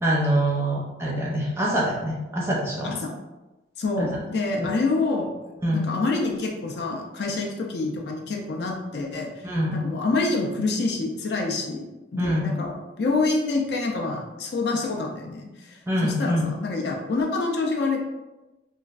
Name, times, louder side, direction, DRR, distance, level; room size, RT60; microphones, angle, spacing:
voice 1, 0.0-2.9 4.0-4.2 4.6-4.7 5.6-5.9 9.4-9.8 12.2-12.6 15.9-16.4, right 1 dB, 15° right, -4 dB, 0.5 m, -25 dB
voice 2, 3.8-5.3 5.7-9.3 9.7-11.8 12.1-12.7 13.0-15.8 16.0-18.0, left 3 dB, 60° left, 0 dB, 0.4 m, -26 dB
3.0 x 2.4 x 2.4 m, 1.1 s
head